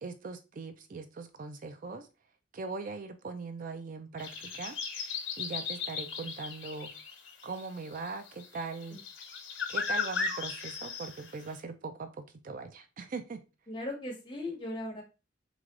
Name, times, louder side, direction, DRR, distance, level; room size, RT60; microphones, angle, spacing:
voice 1, 0.0-2.1 2.5-4.8 5.4-6.9 7.4-9.0 9.7-13.4, right 4 dB, 45° right, 0.4 m, -40 dB
sound 1, 4.2-11.5, left 5 dB, 90° left, 1.1 m, -37 dB
voice 2, 13.7-15.0, left 1 dB, 25° left, 1.5 m, -37 dB
3.5 x 3.3 x 3.7 m
head